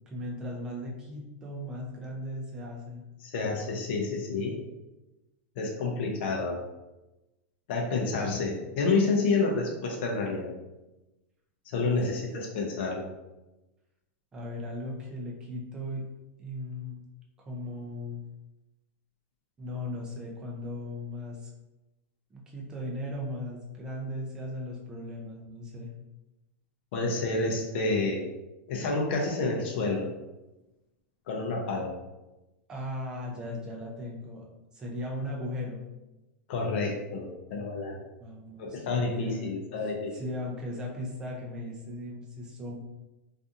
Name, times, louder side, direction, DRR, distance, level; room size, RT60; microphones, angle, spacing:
voice 1, 0.1-3.0 11.8-12.2 14.3-16.0 16.4-17.0 17.4-18.2 19.6-21.5 22.3-25.9 32.7-34.5 34.7-35.8 38.2-39.5 40.1-42.8, left 1 dB, 10° right, -2 dB, 0.4 m, -37 dB
voice 2, 3.2-4.6 5.6-6.6 7.7-10.5 11.7-13.1 26.9-28.3 28.7-30.1 31.3-31.9 36.5-38.0 38.6-40.2, left 3 dB, 50° left, -1 dB, 0.5 m, -29 dB
2.7 x 2.4 x 2.4 m, 1.0 s
supercardioid pair, 170°, 7 cm